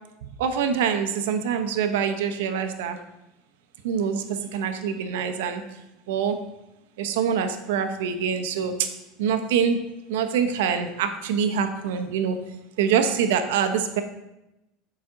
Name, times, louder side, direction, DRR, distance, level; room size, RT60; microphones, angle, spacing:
voice 1, 0.4-3.0 3.8-5.6 6.1-6.4 7.0-8.9 9.2-9.8 10.1-12.4 12.8-14.0, right 7 dB, 85° right, 8 dB, 0.7 m, -25 dB
7.1 x 5.0 x 3.8 m, 0.92 s
supercardioid pair, 150°, 0 cm